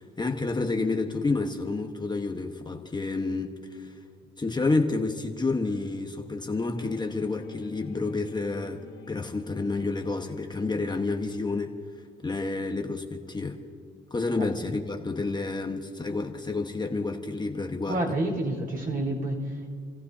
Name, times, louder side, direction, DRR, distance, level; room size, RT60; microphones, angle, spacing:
voice 1, 0.0-4.0 4.4-8.8 9.1-11.7 12.2-13.6 14.1-18.0, left 3 dB, 20° left, 3 dB, 1.3 m, -29 dB
sound 1, 6.7-11.8, left 7 dB, 55° left, 1.2 m, -47 dB
voice 2, 17.9-19.7, right 1 dB, 45° right, 0 dB, 4.5 m, -29 dB
29.0 x 15.0 x 2.8 m, 2.1 s
cardioid pair, 90°, 20 cm